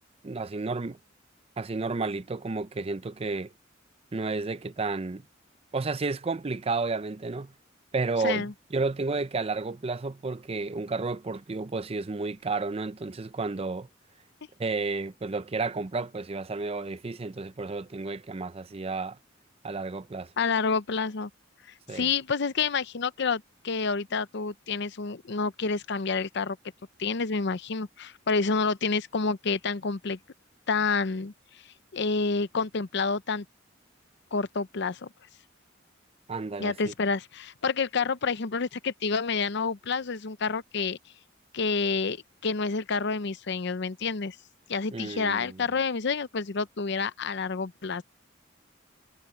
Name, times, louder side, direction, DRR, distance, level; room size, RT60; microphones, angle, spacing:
voice 1, 0.2-1.0 1.6-3.5 4.1-5.2 5.7-7.5 7.9-13.9 14.6-19.2 19.6-20.3 21.9-22.1 36.3-36.9 44.9-45.6, right 3 dB, 30° right, 0.5 m, -32 dB
voice 2, 20.4-21.3 21.9-26.6 27.0-30.2 30.7-31.3 31.9-33.4 34.3-35.1 36.6-41.0 41.5-44.4 44.7-48.0, left 4 dB, 60° left, 0.7 m, -28 dB
head